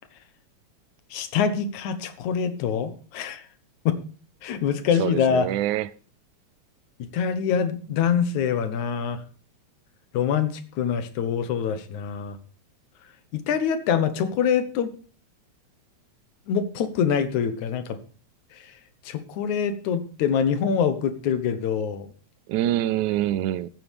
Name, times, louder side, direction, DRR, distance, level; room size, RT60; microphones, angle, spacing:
voice 1, 1.1-3.4 3.9-4.0 4.4-5.5 7.1-9.2 10.1-12.4 13.3-14.9 16.5-18.0 19.1-22.1, left 7 dB, 80° left, 2.6 m, -25 dB
voice 2, 5.0-5.9 22.5-23.7, right 13 dB, 85° right, 2.1 m, -25 dB
14.5 x 9.7 x 3.5 m
omnidirectional pair, 3.3 m